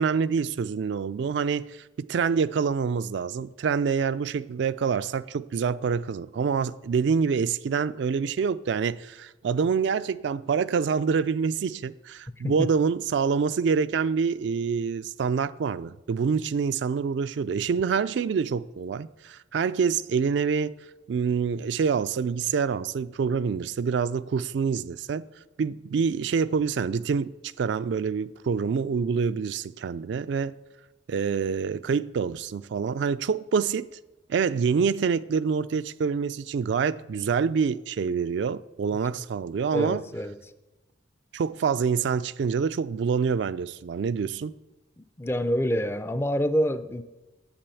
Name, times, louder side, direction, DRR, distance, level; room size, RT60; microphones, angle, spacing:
voice 1, 0.0-20.7 21.1-25.2 25.6-30.5 31.1-33.9 34.3-40.0 41.3-44.5, right 6 dB, 65° right, 0.3 m, -26 dB
voice 2, 39.7-40.4 45.2-47.0, equal, 15° left, 0.4 m, -26 dB
8.8 x 7.6 x 6.9 m
head